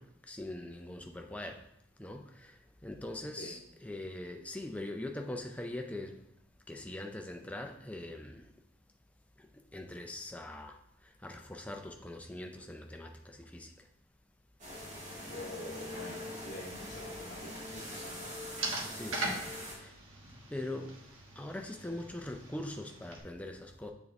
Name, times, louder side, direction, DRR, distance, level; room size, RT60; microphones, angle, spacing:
voice 1, 0.0-1.6 2.0-6.2 6.7-8.5 9.4-9.5 9.7-10.8 11.0-13.7 18.9-19.5 19.8-19.9 20.5-20.9 21.4-23.9, left 1 dB, 5° left, 0.4 m, -42 dB
sound 1, 14.6-19.7, left 1 dB, 35° right, 2.2 m, -43 dB
voice 2, 15.2-18.3 20.8-20.9, left 1 dB, 45° left, 0.9 m, -46 dB
sound 2, 17.4-23.2, right 2 dB, 85° right, 1.2 m, -42 dB
7.2 x 3.6 x 3.6 m
head